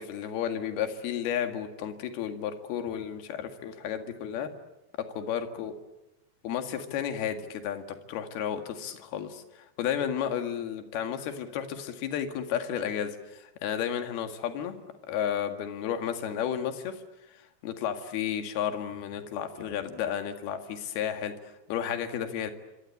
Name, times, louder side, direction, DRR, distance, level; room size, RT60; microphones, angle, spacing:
voice 1, 0.0-4.5 5.0-5.7 6.4-14.8 15.1-17.0 17.6-22.5, left 9 dB, 65° left, 7 dB, 3.8 m, -32 dB
26.0 x 26.0 x 8.6 m, 0.96 s
omnidirectional pair, 4.9 m